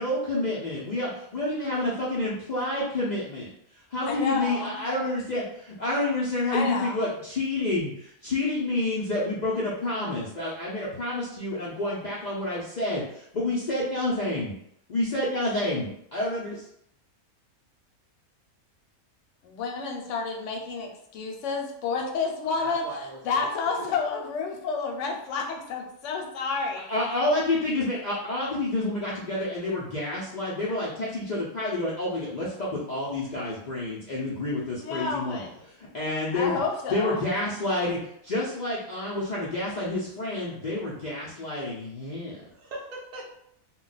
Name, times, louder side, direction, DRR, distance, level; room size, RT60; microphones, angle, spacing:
voice 1, 0.0-3.5 3.9-14.5 14.9-16.7 26.9-35.5 35.9-36.6 36.9-42.4, left 2 dB, 85° left, -6 dB, 0.4 m, -29 dB
voice 2, 4.0-4.8 6.5-7.0 19.4-22.8 23.2-26.8 34.8-35.6 36.3-37.2, left 4 dB, 65° left, 1 dB, 0.9 m, -30 dB
voice 3, 22.6-23.4 23.7-23.9 42.5-43.3, right 1 dB, 60° right, -3 dB, 0.4 m, -40 dB
2.3 x 2.2 x 3.8 m, 0.72 s
omnidirectional pair, 1.5 m